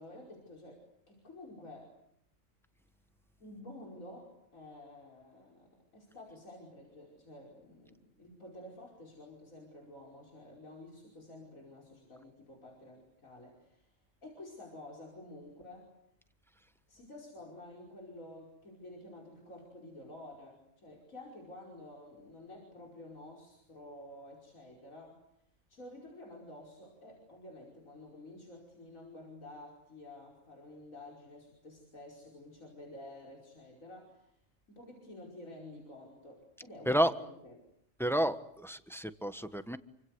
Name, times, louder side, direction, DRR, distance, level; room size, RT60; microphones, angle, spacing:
voice 1, 0.0-2.0 3.4-13.9 14.2-15.9 16.9-25.2 25.7-34.3 34.7-37.6, left 1 dB, 90° left, -1 dB, 5.8 m, -51 dB
voice 2, 36.8-37.2 38.0-39.8, equal, ahead, 10 dB, 1.3 m, -30 dB
28.5 x 25.5 x 8.1 m, 0.72 s
omnidirectional pair, 1.4 m